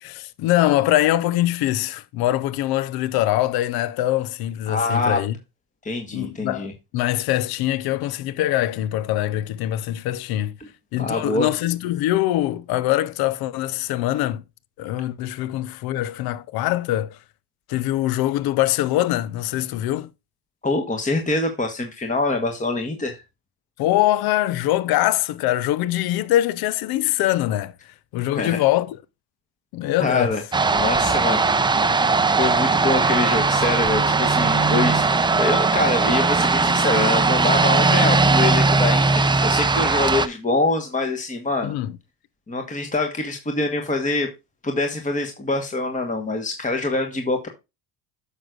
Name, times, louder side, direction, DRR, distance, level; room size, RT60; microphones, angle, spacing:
voice 1, 0.0-5.4 6.1-6.7 6.9-10.5 10.9-14.4 14.8-17.2 17.7-20.1 23.8-29.0 29.7-30.4 41.6-41.9, left 14 dB, 60° left, 0.8 m, -23 dB
voice 2, 4.7-5.2 5.8-6.7 10.6-10.7 11.0-11.5 20.6-23.2 28.3-28.6 30.0-30.4 30.7-31.7 32.4-35.0 35.4-41.8 42.5-44.3 44.6-47.5, left 2 dB, 20° left, 1.4 m, -24 dB
sound 1, 30.5-40.3, right 3 dB, 10° right, 0.6 m, -19 dB
9.8 x 6.5 x 2.5 m
supercardioid pair, 85°, 41 cm